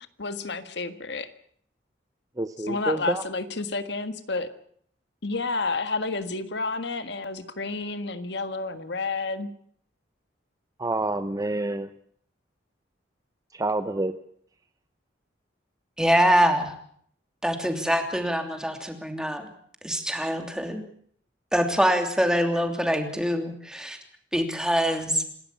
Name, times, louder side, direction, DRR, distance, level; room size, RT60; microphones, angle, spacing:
voice 1, 0.2-1.3 2.6-4.5 5.2-9.5, left 3 dB, 65° left, 10 dB, 1.7 m, -30 dB
voice 2, 2.4-3.2 10.8-11.9 13.5-14.2, right 2 dB, 20° right, 11 dB, 0.8 m, -28 dB
voice 3, 16.0-16.7 17.4-19.5 19.8-20.8 21.5-24.0 24.3-25.3, equal, 5° right, 5 dB, 2.9 m, -24 dB
27.5 x 13.0 x 8.5 m, 0.63 s
head